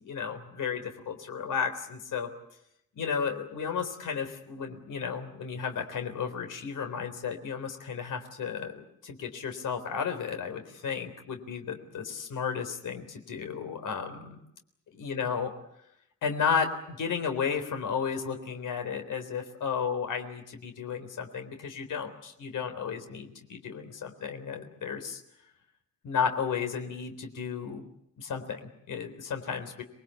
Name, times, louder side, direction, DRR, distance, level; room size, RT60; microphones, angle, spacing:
voice 1, 0.0-2.3 3.0-14.4 14.9-15.5 16.2-25.2 26.0-27.8 28.2-29.8, left 6 dB, 80° left, 6 dB, 3.9 m, -33 dB
27.0 x 21.5 x 8.4 m, 0.77 s
cardioid pair, 120°, 31 cm